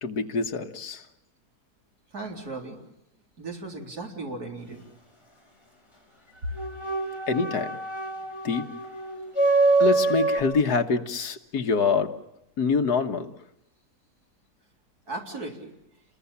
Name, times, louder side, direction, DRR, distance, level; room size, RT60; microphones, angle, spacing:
voice 1, 0.0-1.1 7.3-7.8 8.4-8.6 9.8-12.1 12.6-13.3, left 4 dB, 75° left, 5 dB, 1.9 m, -25 dB
voice 2, 2.1-2.8 3.4-4.8 15.1-15.7, right 3 dB, 70° right, 1 dB, 4.4 m, -36 dB
sound 1, 6.5-10.4, right 3 dB, 15° left, 4.8 m, -25 dB
29.5 x 21.5 x 7.1 m, 0.84 s
omnidirectional pair, 1.7 m